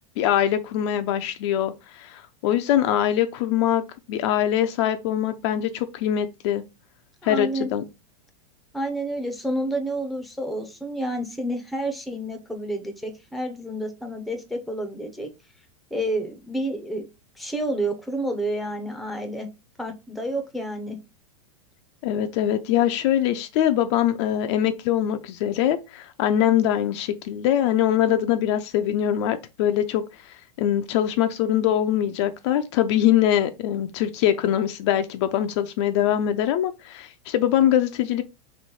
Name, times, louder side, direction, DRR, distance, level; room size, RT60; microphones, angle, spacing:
voice 1, 0.2-3.8 4.1-6.6 7.2-7.8 22.0-30.0 30.6-38.2, left 11 dB, 50° left, 0.4 m, -23 dB
voice 2, 7.2-7.7 8.7-15.3 15.9-17.1 17.4-19.5 19.8-21.0, right 1 dB, ahead, 0.6 m, -29 dB
3.2 x 3.0 x 4.2 m
supercardioid pair, 135°, 19 cm